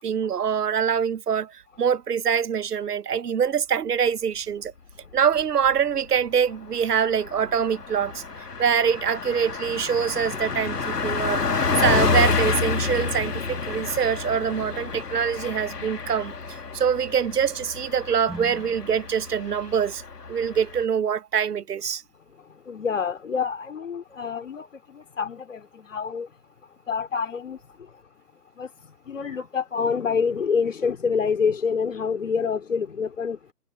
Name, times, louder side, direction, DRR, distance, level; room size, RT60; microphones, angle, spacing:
voice 1, 0.0-4.7 5.1-8.2 8.6-20.0 20.3-22.0, right 7 dB, 70° right, 0.7 m, -24 dB
Car passing by, 5.2-5.8 6.1-6.3 6.6-20.8, left 4 dB, 70° left, 2.3 m, -29 dB
sound 1, 18.3-20.4, right 1 dB, ahead, 5.4 m, -44 dB
voice 2, 22.7-26.3 26.9-27.6 28.6-28.7 29.1-33.4, left 6 dB, 50° left, 2.7 m, -27 dB
figure-of-eight pair, 160°, 49 cm